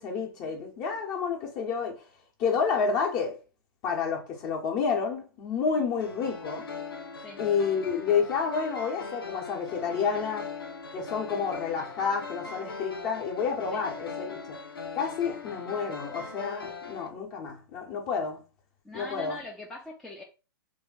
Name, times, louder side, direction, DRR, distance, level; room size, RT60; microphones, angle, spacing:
voice 1, 0.0-2.0 2.4-3.4 3.8-6.7 7.4-10.5 10.9-14.4 14.9-18.4 18.9-19.4, left 6 dB, 35° left, 0.8 m, -29 dB
sound 1, 6.0-17.1, left 4 dB, 85° left, 0.7 m, -40 dB
voice 2, 18.8-20.2, left 2 dB, 5° left, 0.5 m, -42 dB
3.1 x 2.2 x 3.8 m
hypercardioid pair, 115°, 12 cm